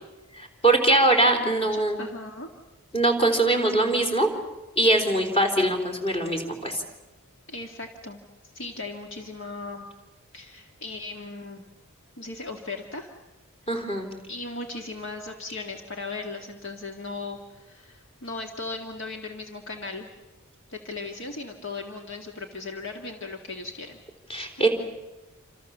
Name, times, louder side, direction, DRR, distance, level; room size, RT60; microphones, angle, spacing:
voice 1, 0.4-2.0 2.9-4.3 4.8-6.8 13.7-14.1 24.3-24.7, right 2 dB, 25° left, 4 dB, 3.9 m, -22 dB
voice 2, 1.3-2.5 7.5-8.2 8.5-9.9 10.3-11.6 12.2-13.1 14.3-20.1 20.7-24.0 24.6-24.7, left 3 dB, 55° left, 3 dB, 1.8 m, -37 dB
28.5 x 27.0 x 7.2 m, 1.1 s
head